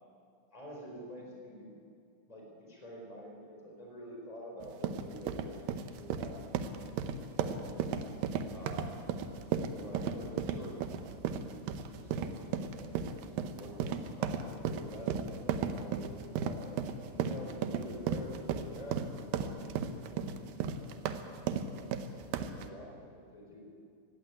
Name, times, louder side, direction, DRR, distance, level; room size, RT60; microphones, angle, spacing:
voice 1, 0.5-1.8 2.3-6.6 7.3-8.0 8.5-9.1 9.8-10.8 11.1-13.0 13.6-21.1 21.6-22.2 22.5-23.7, equal, 10° left, -1 dB, 3.9 m, -48 dB
sound 1, 4.6-22.7, right 7 dB, 85° right, 2.0 m, -35 dB
17.0 x 16.5 x 9.5 m, 2.4 s
omnidirectional pair, 5.4 m